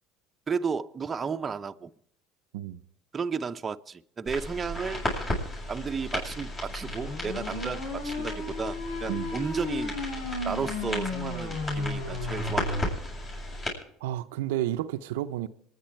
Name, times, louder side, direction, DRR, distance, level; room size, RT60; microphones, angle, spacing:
voice 1, 0.5-1.9 3.1-5.0 5.7-10.0 10.4-12.9, right 5 dB, 25° right, 0.8 m, -33 dB
sound 1, 4.3-13.7, left 1 dB, 30° left, 7.9 m, -35 dB
sound 2, 6.9-12.8, left 2 dB, 80° left, 5.5 m, -34 dB
voice 2, 14.0-15.5, right 13 dB, 85° right, 0.7 m, -31 dB
26.5 x 10.0 x 4.6 m
supercardioid pair, 90°, 0 cm